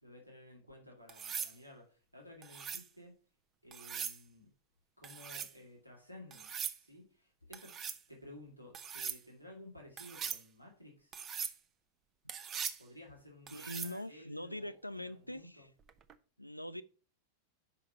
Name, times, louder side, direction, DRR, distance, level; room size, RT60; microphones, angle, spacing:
voice 1, 0.0-3.1 3.6-4.5 5.0-7.8 8.1-11.2 12.8-15.7, left 1 dB, 90° right, 2.1 m, -55 dB
sound 1, 1.1-1.5 2.4-2.9 3.7-4.2 5.0-5.5 6.3-6.8 7.5-8.0 8.7-9.2 10.0-10.4 11.1-11.6 12.3-12.8 13.5-14.0 15.9-16.1, right 7 dB, 30° right, 0.6 m, -41 dB
voice 2, 13.5-15.7 16.4-16.8, left 1 dB, 90° left, 0.4 m, -43 dB
5.7 x 5.0 x 6.5 m
figure-of-eight pair, 90°, 0 cm